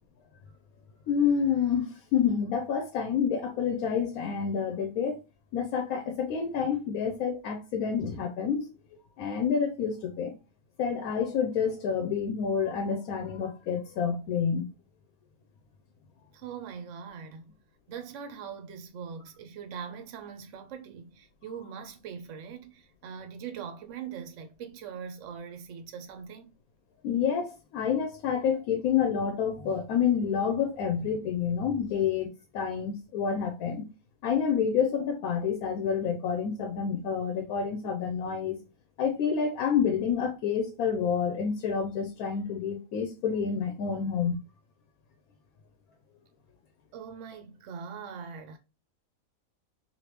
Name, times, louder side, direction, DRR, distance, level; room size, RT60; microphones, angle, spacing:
voice 1, 1.1-5.2 5.5-8.7 9.2-10.3 10.8-14.7 27.0-32.3 32.5-33.8 34.2-38.6 39.0-44.4, left 7 dB, 85° left, 1.1 m, -28 dB
voice 2, 16.3-17.5 17.9-26.5 46.9-48.6, right 7 dB, 65° right, 0.9 m, -42 dB
3.2 x 2.6 x 2.9 m
omnidirectional pair, 1.5 m